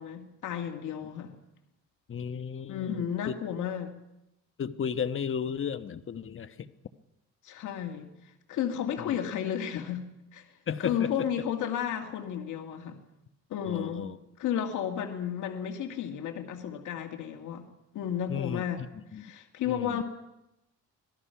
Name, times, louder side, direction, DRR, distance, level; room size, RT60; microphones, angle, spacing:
voice 1, 0.0-1.3 2.7-3.9 7.4-8.1 8.5-10.1 10.3-10.5 10.8-13.0 13.5-14.1 14.4-17.7 17.9-18.8 19.1-20.0, left 9 dB, 80° left, 4 dB, 2.2 m, -32 dB
voice 2, 2.1-3.1 4.6-6.7 9.0-9.2 10.7-11.3 13.7-14.2 18.3-18.6 18.9-19.3 19.7-20.0, left 7 dB, 45° left, 11 dB, 1.2 m, -34 dB
26.0 x 18.5 x 5.9 m, 0.88 s
cardioid pair, 90°, 30 cm